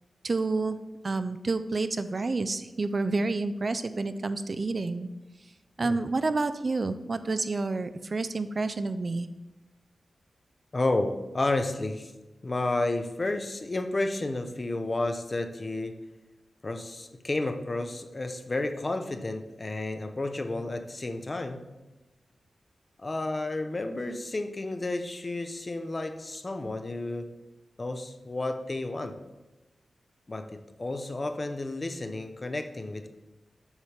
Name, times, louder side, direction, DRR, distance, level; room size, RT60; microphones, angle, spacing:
voice 1, 0.2-0.8 1.0-5.1 5.8-9.3, right 3 dB, 50° right, 11 dB, 0.3 m, -29 dB
voice 2, 10.7-12.1 12.4-15.9 16.6-21.6 23.0-27.4 27.8-29.2 30.3-33.1, left 2 dB, 35° left, 7 dB, 0.6 m, -31 dB
7.1 x 5.3 x 3.3 m, 1.0 s
wide cardioid pair, 75°, 0 cm